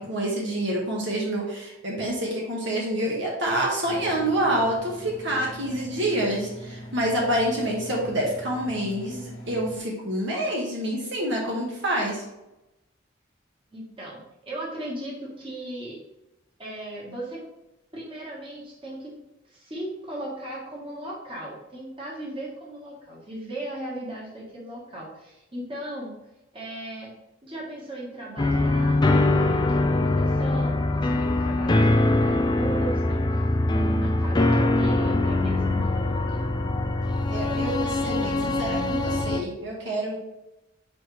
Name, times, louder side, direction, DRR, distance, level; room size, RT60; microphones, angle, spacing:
voice 1, 0.0-12.2 37.3-40.2, right 1 dB, 65° right, -2 dB, 1.6 m, -27 dB
Engine, 3.8-9.8, equal, 75° left, 1.1 m, -42 dB
voice 2, 13.7-16.0 16.6-17.4 17.9-19.1 19.4-26.2 26.5-27.1 27.4-36.4, right 1 dB, 25° right, -4 dB, 1.6 m, -37 dB
sound 1, 28.4-39.4, left 2 dB, 20° left, 0.4 m, -23 dB
6.1 x 4.8 x 3.3 m, 0.94 s
head